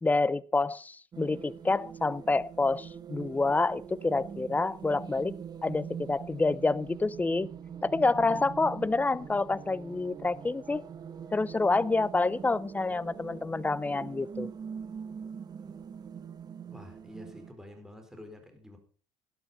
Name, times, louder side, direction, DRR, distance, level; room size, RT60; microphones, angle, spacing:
voice 1, 0.0-5.4 5.6-7.5 7.8-10.8 11.3-14.5, left 3 dB, 15° left, 0.6 m, -28 dB
sound 1, 1.1-17.5, right 7 dB, 35° right, 1.2 m, -43 dB
voice 2, 16.7-18.8, left 1 dB, 5° right, 4.3 m, -48 dB
12.5 x 9.9 x 5.4 m
supercardioid pair, 95°, 12 cm